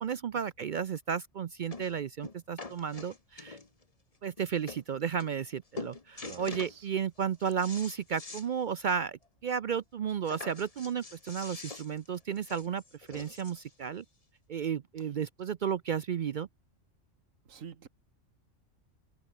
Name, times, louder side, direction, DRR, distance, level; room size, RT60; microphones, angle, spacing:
voice 1, 0.0-3.6 4.2-12.8 13.1-14.0 14.5-16.5, right 7 dB, 60° right, 0.5 m, -33 dB
sound 1, 1.0-1.1 1.7-1.9 2.2-3.8 4.4-4.5 4.7-4.8 5.2-5.5 5.8-6.8 7.2-8.5 8.8-8.9 9.3-9.4 10.2-13.7 14.5-14.6, left 3 dB, 30° left, 1.4 m, -45 dB
voice 2, 6.2-6.9 17.5-17.9, right 7 dB, 90° right, 1.6 m, -47 dB
open air
omnidirectional pair, 1.3 m